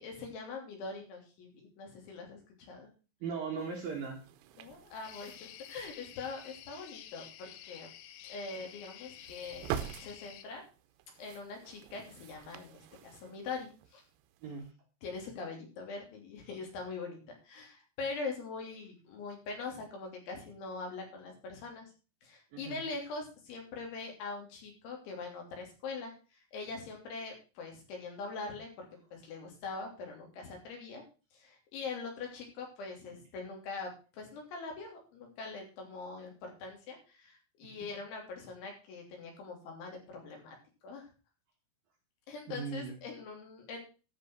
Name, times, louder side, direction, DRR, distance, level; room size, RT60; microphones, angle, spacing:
voice 1, 0.0-2.9 4.6-7.9 8.3-9.7 10.0-10.6 11.2-14.0 15.0-21.9 22.2-28.9 29.1-31.0 31.3-40.6 40.8-41.1 42.3-43.8, left 4 dB, 65° left, 1 dB, 5.4 m, -43 dB
voice 2, 3.2-4.2 14.4-14.7 22.5-22.8 37.6-37.7 42.5-43.0, right 5 dB, 60° right, 1 dB, 2.5 m, -38 dB
sound 1, 3.6-14.7, right 10 dB, 80° right, 3.4 m, -47 dB
sound 2, 5.0-10.5, left 11 dB, 85° left, 3.7 m, -51 dB
13.5 x 6.1 x 6.0 m, 0.34 s
omnidirectional pair, 5.9 m